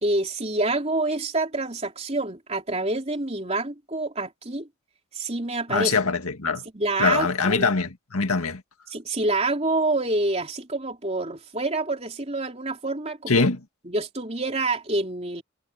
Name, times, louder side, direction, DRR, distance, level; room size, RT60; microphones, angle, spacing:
voice 1, 0.0-4.7 5.1-5.9 6.7-7.7 8.9-13.5 13.8-15.4, right 2 dB, 30° right, 3.5 m, -27 dB
voice 2, 5.7-6.6 7.0-8.6 13.3-13.6, left 4 dB, 90° left, 2.0 m, -23 dB
head